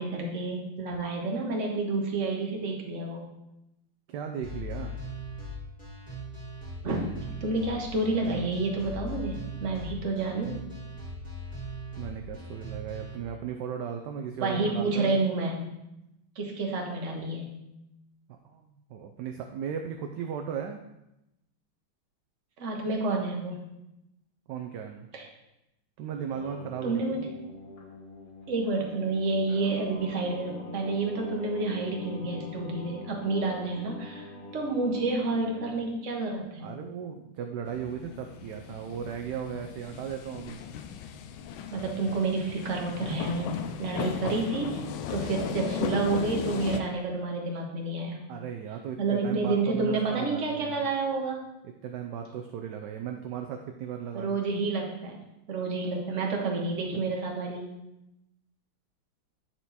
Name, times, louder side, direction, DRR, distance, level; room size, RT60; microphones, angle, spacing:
voice 1, 0.0-3.2 6.8-10.6 14.4-15.6 16.3-17.5 22.6-23.6 25.1-25.2 26.8-27.3 28.5-34.3 34.5-36.7 41.7-44.8 45.1-48.2 49.0-51.4 54.1-55.1 55.5-57.7, right 3 dB, 40° right, 0 dB, 1.4 m, -29 dB
voice 2, 4.1-4.9 12.0-15.3 18.4-20.8 24.5-25.1 26.0-27.3 36.6-40.6 48.3-50.9 51.6-54.4, right 8 dB, 75° right, 4 dB, 1.1 m, -36 dB
sound 1, 4.4-13.2, equal, 5° left, 2.2 m, -39 dB
Singing, 26.1-35.9, left 2 dB, 40° left, 1.3 m, -44 dB
sound 2, 37.7-46.8, left 7 dB, 85° left, 1.4 m, -36 dB
9.0 x 4.5 x 4.1 m, 0.90 s
omnidirectional pair, 2.2 m